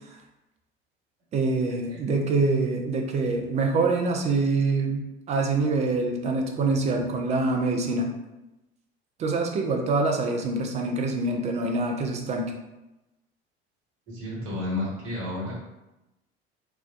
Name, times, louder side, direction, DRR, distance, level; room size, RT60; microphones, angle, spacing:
voice 1, 1.3-8.1 9.2-12.5, right 3 dB, 20° right, 2 dB, 0.4 m, -25 dB
voice 2, 1.9-2.2 14.1-15.5, left 2 dB, 40° right, -6 dB, 1.1 m, -32 dB
2.5 x 2.1 x 2.3 m, 0.97 s
figure-of-eight pair, 70°, 32 cm